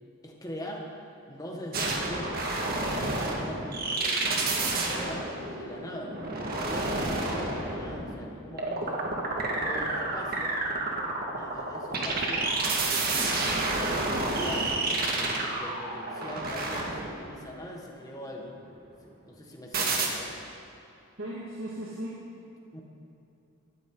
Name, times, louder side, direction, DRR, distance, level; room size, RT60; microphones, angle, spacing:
voice 1, 0.2-2.7 3.2-4.5 4.9-9.0 9.6-10.6 11.3-12.5 13.0-14.7 15.1-18.5 19.0-20.4 22.7-22.8, equal, 15° left, -1 dB, 1.7 m, -42 dB
sound 1, 1.7-17.4 19.7-20.1, right 2 dB, 45° right, 1.8 m, -30 dB
voice 2, 21.2-22.3, right 1 dB, 65° right, -5 dB, 2.0 m, -37 dB
18.5 x 14.0 x 4.0 m, 2.8 s
head